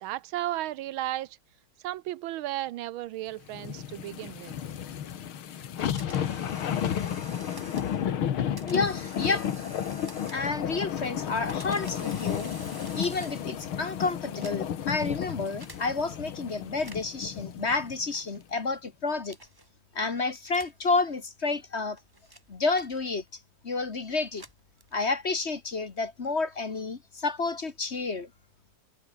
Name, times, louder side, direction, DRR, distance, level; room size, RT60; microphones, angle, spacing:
voice 1, 0.0-1.4 1.8-4.5, right 14 dB, 75° right, 1.4 m, -34 dB
sound 1, 3.5-18.0 18.4-18.5, left 9 dB, 70° left, 2.3 m, -33 dB
sound 2, 5.8-8.0 8.6-10.7 11.3-13.6 14.3-14.9 15.6-15.8 16.7-17.2 18.1-18.5 19.3-19.7 20.5-20.8 21.6-23.4 24.1-25.2, right 1 dB, 10° right, 1.9 m, -49 dB
voice 2, 8.5-9.7 10.3-12.5 12.9-19.4 19.9-22.0 22.5-23.2 23.6-24.4 24.9-28.3, left 3 dB, 35° left, 1.5 m, -30 dB
omnidirectional pair, 2.4 m